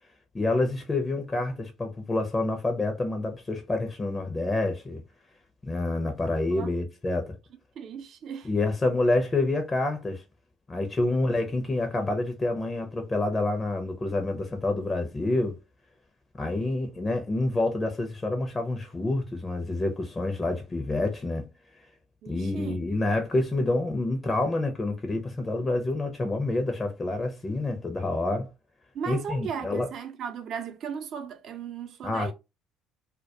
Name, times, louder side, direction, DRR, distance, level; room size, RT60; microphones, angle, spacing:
voice 1, 0.3-5.0 5.6-7.3 8.4-10.2 10.7-15.6 16.4-21.5 22.3-28.5 29.1-29.9 32.0-32.3, left 2 dB, 25° left, 0.6 m, -28 dB
voice 2, 7.8-8.5 11.1-11.2 22.2-22.8 28.9-32.3, right 7 dB, 55° right, 0.5 m, -36 dB
2.2 x 2.2 x 2.7 m
hypercardioid pair, 60°, 0 cm